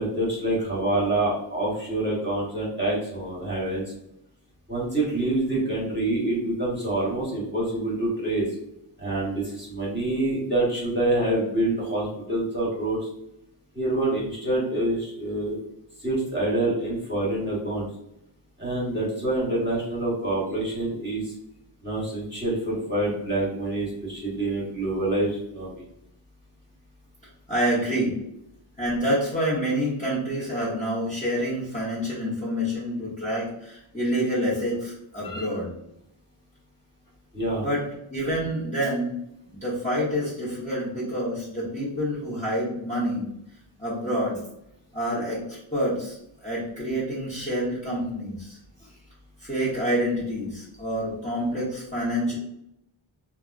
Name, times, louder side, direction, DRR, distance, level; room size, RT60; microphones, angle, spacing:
voice 1, 0.0-3.8 4.7-8.5 9.0-13.1 13.7-15.6 16.0-17.9 18.6-21.3 21.8-25.8 35.2-35.5 37.3-37.6, right 1 dB, 20° right, -6 dB, 1.2 m, -26 dB
voice 2, 27.5-28.2 28.8-35.7 37.6-37.8 38.1-39.1 39.5-43.3 43.8-44.4 44.9-48.6 49.4-52.4, equal, 15° left, -9 dB, 1.0 m, -27 dB
3.4 x 2.2 x 2.5 m, 0.80 s
wide cardioid pair, 60°, 50 cm